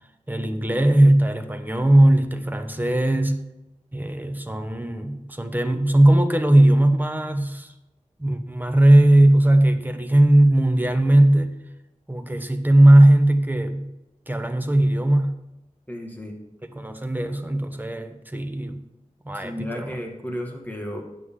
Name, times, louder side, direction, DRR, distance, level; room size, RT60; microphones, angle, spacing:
voice 1, 0.3-3.4 3.9-7.7 8.2-11.5 12.1-13.9 14.3-15.3 16.7-18.8 19.2-19.9, right 1 dB, 15° right, 7 dB, 1.0 m, -18 dB
voice 2, 15.9-16.4 19.3-21.0, equal, 10° left, 1 dB, 2.0 m, -33 dB
9.3 x 8.2 x 3.8 m, 0.93 s
wide cardioid pair, 60°, 13 cm